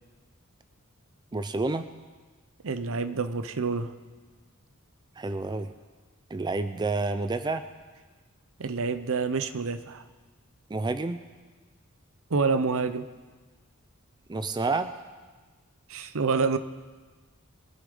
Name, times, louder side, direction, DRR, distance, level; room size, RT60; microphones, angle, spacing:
voice 1, 1.3-1.9 5.2-5.7 6.3-7.6 10.7-11.2 14.3-14.9, right 3 dB, 20° right, 10 dB, 0.4 m, -29 dB
voice 2, 2.6-3.9 8.6-10.0 12.3-13.1 15.9-16.6, right 4 dB, 65° right, 11 dB, 0.7 m, -27 dB
22.5 x 8.3 x 5.4 m, 1.3 s
head